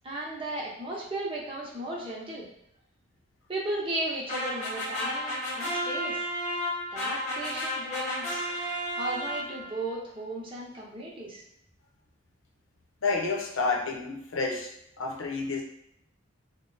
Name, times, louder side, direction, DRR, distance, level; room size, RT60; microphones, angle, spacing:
voice 1, 0.0-2.5 3.5-6.2 6.9-8.5 9.0-11.4, right 1 dB, 25° right, -4 dB, 0.8 m, -35 dB
sound 1, 4.3-9.8, equal, 35° left, 1.0 m, -32 dB
voice 2, 13.0-14.7 15.0-15.6, left 3 dB, 85° left, 0 dB, 0.7 m, -29 dB
3.3 x 2.2 x 3.9 m, 0.77 s
head